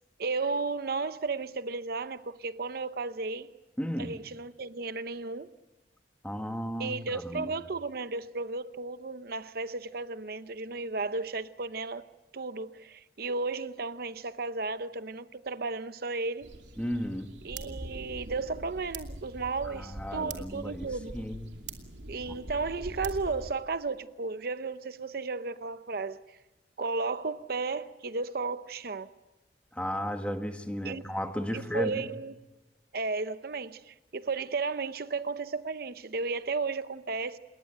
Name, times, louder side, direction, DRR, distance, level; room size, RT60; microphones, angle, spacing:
voice 1, 0.2-3.5 4.0-5.5 6.8-12.1 12.3-16.5 17.4-21.2 22.1-26.2 26.8-29.1 30.8-31.0 31.5-32.3 32.9-37.4, right 4 dB, 60° right, 0.8 m, -34 dB
voice 2, 3.8-4.1 6.2-7.5 16.8-17.3 19.6-21.5 22.3-22.4 29.7-32.1, equal, 5° left, 1.7 m, -34 dB
sound 1, 16.4-23.5, right 2 dB, 80° right, 2.6 m, -43 dB
28.0 x 22.0 x 7.9 m
head